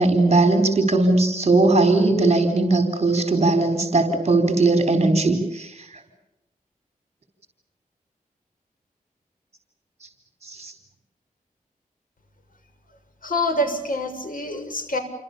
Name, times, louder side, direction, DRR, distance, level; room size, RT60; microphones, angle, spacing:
voice 1, 0.0-5.7 10.5-10.7, right 2 dB, 45° right, 7 dB, 4.4 m, -19 dB
voice 2, 13.2-15.0, left 1 dB, 65° left, 6 dB, 6.4 m, -26 dB
29.0 x 25.0 x 7.0 m, 0.92 s
wide cardioid pair, 95°, 15 cm